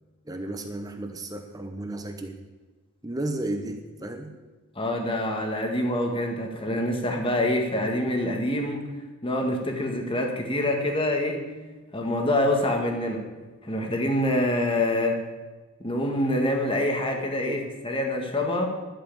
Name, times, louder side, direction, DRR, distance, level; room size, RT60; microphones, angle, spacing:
voice 1, 0.3-2.4 3.0-4.4 17.5-17.6, right 1 dB, 15° right, 5 dB, 0.8 m, -33 dB
voice 2, 4.8-8.9 9.2-11.4 11.9-13.2 13.6-15.2 15.8-18.7, left 1 dB, 25° left, 3 dB, 1.8 m, -26 dB
11.5 x 7.9 x 8.8 m, 1.3 s
head